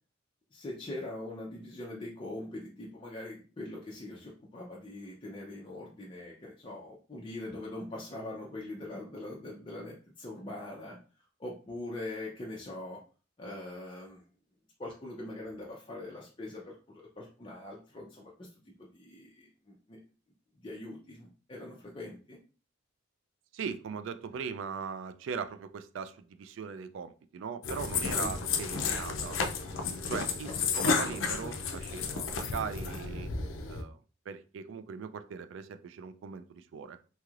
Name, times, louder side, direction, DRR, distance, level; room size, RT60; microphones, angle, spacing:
voice 1, 0.5-11.0 11.4-13.0 13.4-14.2 14.8-18.5 18.8-20.0 20.6-22.4 28.2-28.4 30.5-30.8, left 1 dB, 25° left, -3 dB, 0.5 m, -42 dB
voice 2, 23.5-29.4 30.1-33.3 33.7-34.0 34.3-37.0, right 6 dB, 70° right, 11 dB, 0.3 m, -39 dB
sound 1, 27.6-33.8, left 5 dB, 85° left, 0.5 m, -32 dB
3.0 x 2.8 x 2.4 m, 0.37 s
head